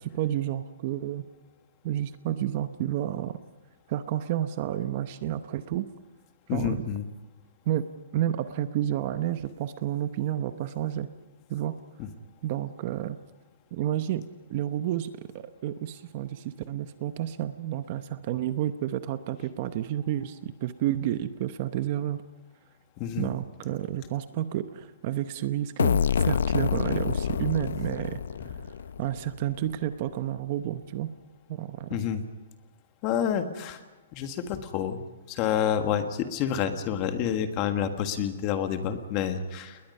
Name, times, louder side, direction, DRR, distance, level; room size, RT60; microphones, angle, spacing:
voice 1, 0.1-1.2 1.8-3.4 3.9-5.8 6.5-6.8 7.7-7.8 8.1-11.1 11.5-11.8 12.4-13.2 13.7-14.2 14.5-15.1 15.3-22.2 23.2-28.2 29.0-31.1 31.5-32.0, right 12 dB, 30° right, 11 dB, 0.8 m, -30 dB
voice 2, 6.5-7.1 12.0-12.1 23.0-23.3 31.9-32.2 33.0-33.8 34.1-35.0 35.3-39.8, left 8 dB, 25° left, 8 dB, 1.5 m, -28 dB
sound 1, 25.8-29.4, left 7 dB, 80° left, 0.7 m, -27 dB
29.5 x 20.5 x 5.5 m, 1.1 s
hypercardioid pair, 175°, 0 cm